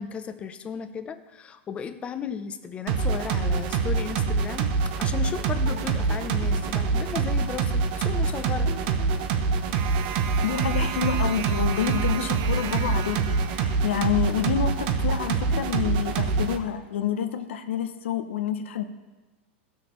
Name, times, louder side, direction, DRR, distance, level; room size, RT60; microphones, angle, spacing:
voice 1, 0.0-8.7, left 7 dB, 20° left, 10 dB, 0.5 m, -35 dB
sound 1, 2.9-16.6, right 4 dB, 50° right, 0.7 m, -25 dB
voice 2, 10.4-18.8, left 8 dB, 90° left, 9 dB, 0.8 m, -28 dB
14.0 x 6.3 x 3.1 m, 1.2 s
supercardioid pair, 150°, 6 cm